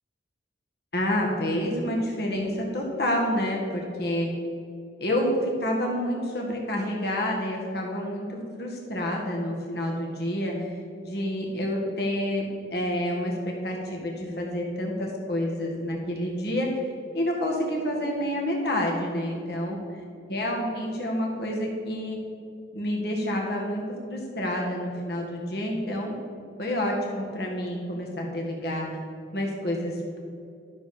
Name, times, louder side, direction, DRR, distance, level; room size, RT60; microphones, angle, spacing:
voice 1, 0.9-4.3 5.0-10.7 11.0-12.5 12.7-13.3 13.6-16.8 17.1-19.8 20.3-22.2 22.7-23.8 24.1-26.1 26.6-28.9 29.3-30.2, left 1 dB, 60° left, -1 dB, 1.9 m, -28 dB
12.5 x 6.7 x 4.3 m, 2.5 s
head